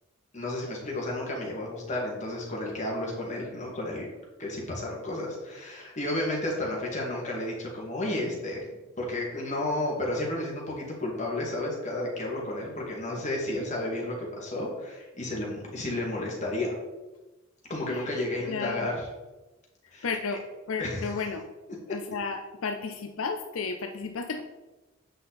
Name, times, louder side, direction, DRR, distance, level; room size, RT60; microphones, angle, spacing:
voice 1, 0.3-4.1 4.4-8.6 9.0-16.7 17.7-19.1 19.9-20.1 20.8-21.2, left 1 dB, 35° left, -2 dB, 2.2 m, -32 dB
voice 2, 18.5-18.9 20.0-21.4 21.9-24.4, left 4 dB, 80° left, 5 dB, 0.6 m, -33 dB
8.3 x 5.7 x 4.2 m, 1.1 s
head